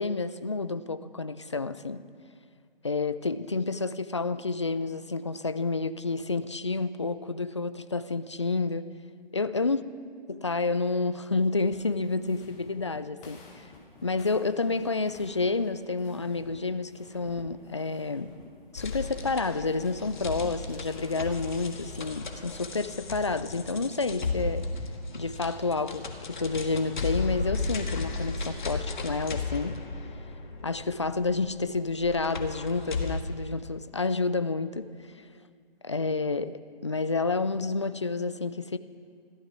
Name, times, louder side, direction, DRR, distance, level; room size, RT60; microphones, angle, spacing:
voice 1, 0.0-2.0 2.8-8.8 9.3-9.8 10.3-13.6 14.0-18.3 18.7-24.6 25.1-29.8 30.6-34.9 35.8-38.8, left 3 dB, 30° left, 13 dB, 0.4 m, -29 dB
sound 1, 11.7-22.1, left 3 dB, 10° left, 1.3 m, -52 dB
sound 2, 18.8-33.2, left 4 dB, 50° left, 1.7 m, -35 dB
14.0 x 13.5 x 6.0 m, 2.2 s
figure-of-eight pair, 150°, 30 cm